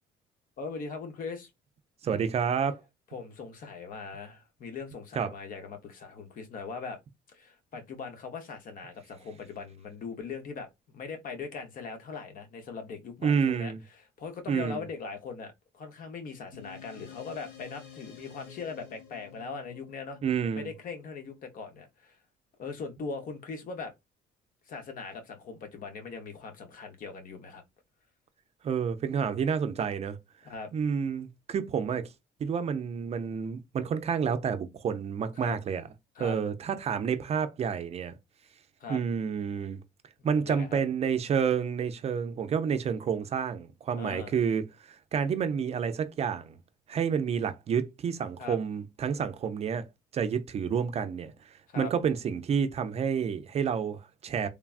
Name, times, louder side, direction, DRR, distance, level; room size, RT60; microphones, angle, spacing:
voice 1, 0.6-1.5 3.1-7.0 7.3-20.2 20.5-22.2 22.6-23.9 24.7-27.6 30.4-30.7 35.4-35.6 36.2-36.4 38.8-39.0 40.3-40.8 44.0-44.3 48.4-48.6 51.7-51.9, left 5 dB, 55° left, 0.8 m, -40 dB
voice 2, 2.0-2.8 5.2-5.3 13.2-13.8 14.5-14.8 20.2-20.7 28.6-30.2 30.7-32.1 32.4-35.8 36.2-38.2 38.9-39.8 40.2-46.6 46.9-49.8 50.1-51.3 51.8-54.5, right 7 dB, 40° right, 0.4 m, -29 dB
sound 1, 16.5-21.3, left 8 dB, 80° left, 1.1 m, -50 dB
3.2 x 2.2 x 2.4 m
cardioid pair, 110°, 17 cm